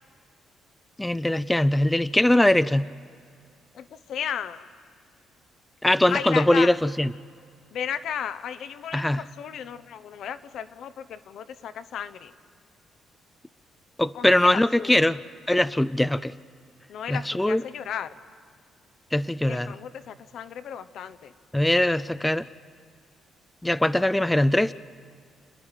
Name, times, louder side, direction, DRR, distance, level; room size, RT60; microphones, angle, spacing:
voice 1, 1.0-2.9 5.8-7.1 8.9-9.2 14.0-15.2 15.5-16.3 17.1-17.6 19.1-19.7 21.5-22.5 23.6-24.7, left 1 dB, 10° left, 14 dB, 0.4 m, -21 dB
voice 2, 3.7-4.7 6.1-6.7 7.7-12.3 14.1-15.0 16.9-18.1 19.5-21.3, left 8 dB, 70° left, 11 dB, 0.8 m, -34 dB
29.5 x 10.5 x 9.1 m, 2.2 s
cardioid pair, 90°, 0 cm